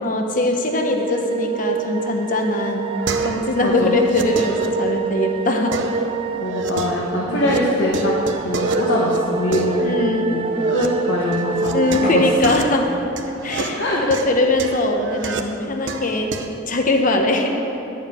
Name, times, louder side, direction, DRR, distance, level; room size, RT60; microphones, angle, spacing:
voice 1, 0.0-2.9 3.2-5.7 7.3-7.5 9.8-10.4 11.7-12.9 13.4-16.4 16.7-17.6, left 2 dB, 45° left, 3 dB, 1.0 m, -21 dB
sound 1, 0.7-12.4, right 4 dB, 30° right, 0.3 m, -26 dB
sound 2, 2.2-3.6 3.9-5.2 5.7-7.6 7.9-10.9 11.3-16.6, right 3 dB, 70° right, 0.8 m, -29 dB
voice 2, 3.6-4.0 6.4-8.1 8.4-9.9 10.3-12.2 13.6-14.0, left 1 dB, 70° left, -4 dB, 1.6 m, -23 dB
11.5 x 7.2 x 8.5 m, 2.9 s
head